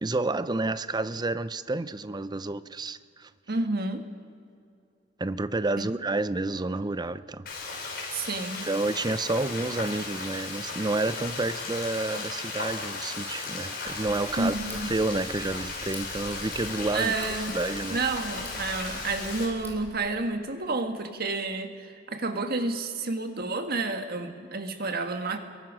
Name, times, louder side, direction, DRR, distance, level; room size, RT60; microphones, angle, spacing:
voice 1, 0.0-3.3 5.2-7.4 8.6-17.1 17.5-18.0, right 2 dB, 20° right, 0.6 m, -30 dB
voice 2, 3.5-4.1 5.8-5.9 8.1-8.7 14.4-14.9 16.9-17.6 17.9-25.4, right 3 dB, 55° right, 1.5 m, -30 dB
Frying (food), 7.5-19.5, left 3 dB, 55° left, 5.8 m, -36 dB
Tick, 13.9-19.9, left 1 dB, 10° left, 4.4 m, -46 dB
28.0 x 22.5 x 6.2 m
head